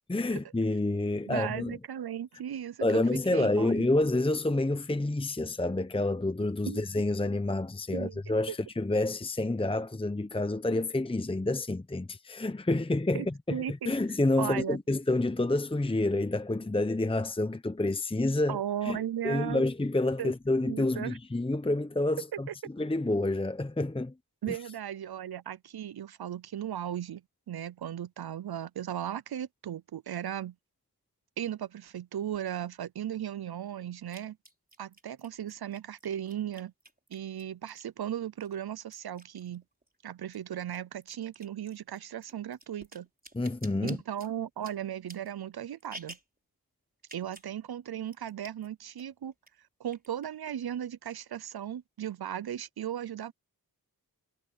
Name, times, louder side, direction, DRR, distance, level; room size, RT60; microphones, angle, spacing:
voice 1, 0.1-1.8 2.8-19.0 19.2-22.5 22.8-24.1 24.5-24.6 43.3-44.0, left 2 dB, 15° left, 0.9 m, -28 dB
voice 2, 1.3-3.9 6.7-6.9 7.9-8.2 8.5-8.6 13.1-13.9 14.4-14.8 18.5-19.6 20.2-20.3 20.6-21.2 24.4-27.2 27.5-30.5 31.4-34.4 34.8-36.7 37.1-39.6 40.0-43.1 43.8-46.2 47.1-49.3 49.8-53.3, right 10 dB, 75° right, 0.7 m, -36 dB
sound 1, 32.3-32.4 34.1-38.0 38.4-40.0 40.2-46.4 47.0-47.5 47.8-47.9 48.1-48.7 49.0-49.5 49.9-50.8, right 1 dB, 25° right, 4.6 m, -51 dB
cardioid pair, 55°, 38 cm